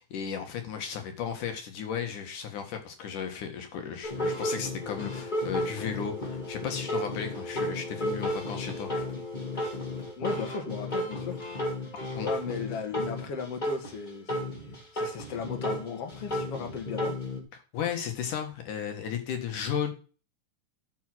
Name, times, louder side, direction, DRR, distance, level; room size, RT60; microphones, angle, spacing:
voice 1, 0.0-8.9 12.2-12.3 17.7-19.9, left 8 dB, 75° left, 5 dB, 3.2 m, -34 dB
sound 1, 4.0-17.4, left 1 dB, 15° left, 2.3 m, -33 dB
voice 2, 10.2-11.4 12.2-14.4 14.9-17.2, left 6 dB, 50° left, 4 dB, 2.8 m, -36 dB
12.5 x 6.3 x 6.2 m, 0.36 s
omnidirectional pair, 3.7 m